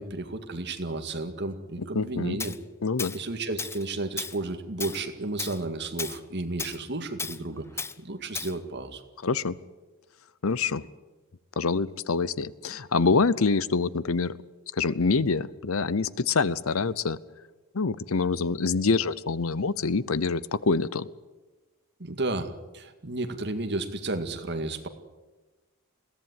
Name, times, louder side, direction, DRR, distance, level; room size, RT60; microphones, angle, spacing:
voice 1, 0.0-2.5 3.1-9.0 22.0-24.9, right 2 dB, 50° right, 7 dB, 2.0 m, -33 dB
voice 2, 1.9-2.4 2.8-3.1 9.2-9.6 10.4-10.9 11.6-14.4 14.7-17.2 17.7-21.1, left 4 dB, 65° left, 18 dB, 0.8 m, -26 dB
Tools, 2.4-2.6 3.0-3.2 3.6-3.8 4.2-4.4 4.8-5.0 5.4-5.6 6.0-6.2 6.6-6.8 7.2-7.4 7.8-7.9 8.3-8.5, left 4 dB, 10° left, 0.6 m, -34 dB
21.5 x 16.5 x 9.7 m, 1.2 s
head